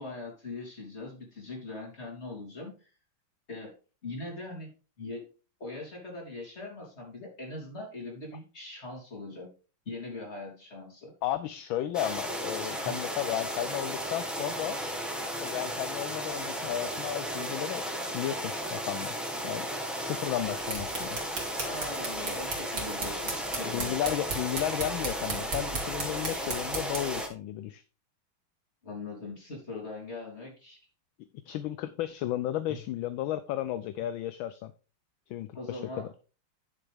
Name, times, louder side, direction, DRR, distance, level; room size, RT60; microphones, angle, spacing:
voice 1, 0.0-2.9 3.5-3.7 4.0-4.7 5.0-5.3 5.6-9.5 9.9-11.1 12.8-13.0 21.6-23.9 28.8-30.8 32.7-32.8 35.5-36.1, left 2 dB, 30° left, -1 dB, 3.6 m, -41 dB
voice 2, 11.2-14.8 15.4-19.2 19.4-19.7 20.0-21.2 23.6-27.8 31.5-34.7 35.3-36.1, left 12 dB, 75° left, 13 dB, 1.3 m, -33 dB
sound 1, 11.9-27.3, equal, ahead, 1.3 m, -35 dB
sound 2, 20.4-27.2, right 3 dB, 45° right, 2.6 m, -37 dB
10.0 x 6.7 x 3.6 m, 0.35 s
omnidirectional pair, 2.3 m